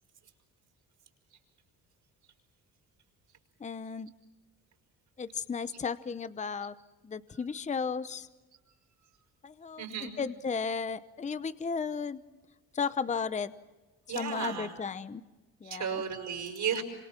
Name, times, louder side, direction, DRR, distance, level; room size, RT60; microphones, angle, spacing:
voice 1, 3.6-4.1 5.2-6.7 7.0-8.3 9.4-12.2 12.7-13.5 14.1-15.2 15.6-16.0, left 5 dB, 20° left, 14 dB, 0.8 m, -34 dB
voice 2, 9.8-10.1 14.1-14.7 15.6-16.8, right 7 dB, 60° right, 4 dB, 5.6 m, -34 dB
27.5 x 26.0 x 5.9 m, 1.2 s
cardioid pair, 100°, 34 cm